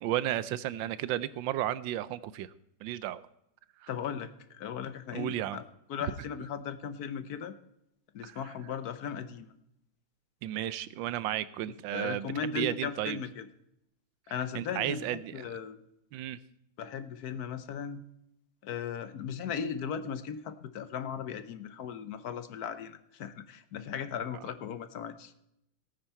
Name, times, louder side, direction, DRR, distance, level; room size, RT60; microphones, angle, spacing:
voice 1, 0.0-2.5 2.8-3.2 3.8-3.9 5.1-5.6 8.2-8.4 10.4-13.2 14.5-15.4 16.1-16.4, right 13 dB, 85° right, 17 dB, 1.4 m, -33 dB
voice 2, 3.9-5.6 5.9-7.5 8.1-9.5 11.9-13.5 14.3-15.8 16.8-18.0 18.6-25.3, left 7 dB, 60° left, 12 dB, 1.3 m, -37 dB
17.0 x 9.1 x 4.4 m, 0.81 s
omnidirectional pair, 2.0 m